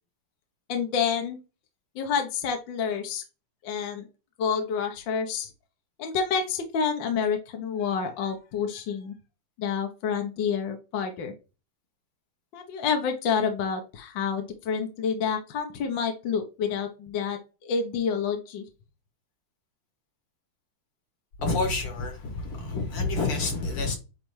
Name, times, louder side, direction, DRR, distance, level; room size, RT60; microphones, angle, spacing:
voice 1, 0.7-1.4 2.0-3.2 3.6-4.1 4.4-5.5 6.0-9.1 9.6-11.3 12.5-18.6, left 6 dB, 65° left, 1.7 m, -28 dB
voice 2, 21.4-24.0, left 3 dB, 85° left, 2.9 m, -28 dB
9.1 x 3.4 x 3.2 m
omnidirectional pair, 2.4 m